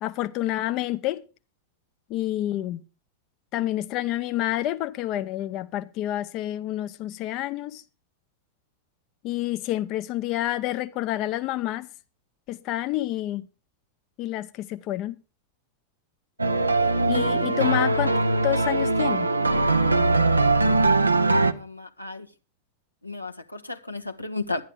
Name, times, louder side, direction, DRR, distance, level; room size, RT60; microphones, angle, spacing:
voice 1, 0.0-1.2 2.1-2.8 3.5-7.8 9.2-11.9 12.5-13.5 14.2-15.1 17.1-18.2 18.4-19.3, left 15 dB, 40° left, 0.7 m, -28 dB
sound 1, 16.4-21.5, right 2 dB, 80° right, 0.7 m, -21 dB
voice 2, 16.8-17.4 21.3-22.3 23.0-24.6, left 3 dB, 85° left, 1.1 m, -35 dB
11.0 x 10.5 x 5.0 m
figure-of-eight pair, 90°, 0 cm